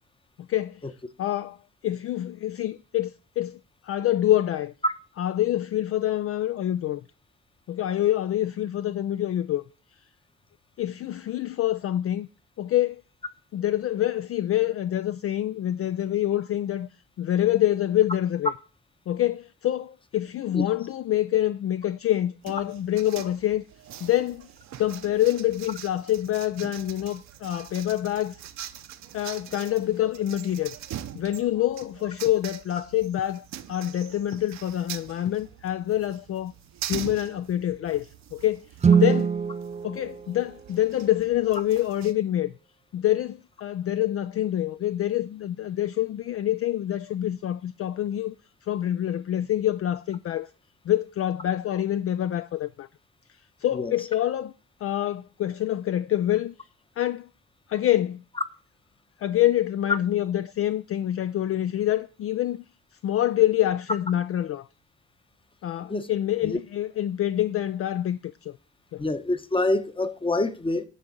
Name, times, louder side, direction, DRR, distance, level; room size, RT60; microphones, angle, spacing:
voice 1, 0.4-0.8 1.2-1.6 1.8-4.7 5.2-7.0 7.7-9.6 10.8-12.3 12.6-13.0 13.5-16.9 17.2-18.5 19.1-23.6 24.0-24.5 24.8-28.4 29.1-30.8 31.1-36.5 36.8-38.6 38.9-39.3 39.8-42.5 42.9-48.4 48.7-50.5 50.9-52.9 53.6-54.5 54.8-56.5 57.0-57.3 57.7-58.2 59.2-62.6 63.0-64.7 65.6-68.6 68.9-69.0, left 12 dB, 50° left, 0.4 m, -26 dB
sound 1, 22.4-42.1, right 11 dB, 65° right, 0.8 m, -43 dB
Guitar, 38.8-41.4, right 6 dB, 25° right, 0.5 m, -24 dB
voice 2, 69.0-70.8, left 2 dB, 15° left, 0.9 m, -26 dB
10.0 x 3.9 x 7.2 m
cardioid pair, 90°, 30 cm